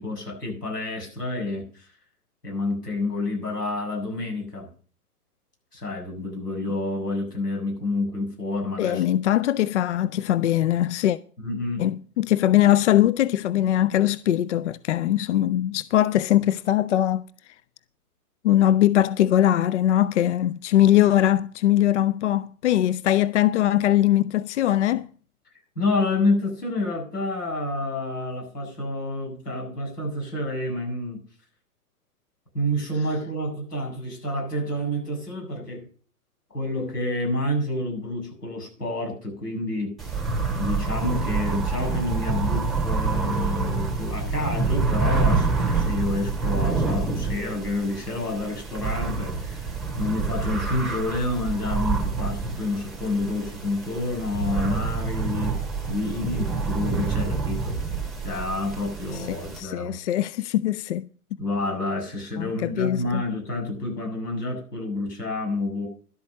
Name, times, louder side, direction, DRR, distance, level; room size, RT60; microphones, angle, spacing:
voice 1, 0.0-1.9 2.4-4.7 5.7-9.0 11.4-11.9 25.8-31.2 32.5-35.9 36.5-40.0 40.6-55.6 55.9-57.8 58.2-60.0 61.4-65.9, left 2 dB, 85° left, 7.7 m, -29 dB
voice 2, 8.8-11.2 11.8-17.2 18.4-25.1 59.3-61.1 62.4-63.2, left 12 dB, 50° left, 0.5 m, -21 dB
sound 1, 40.0-59.6, right 4 dB, ahead, 3.5 m, -27 dB
12.0 x 8.3 x 6.6 m
figure-of-eight pair, 120°, 46 cm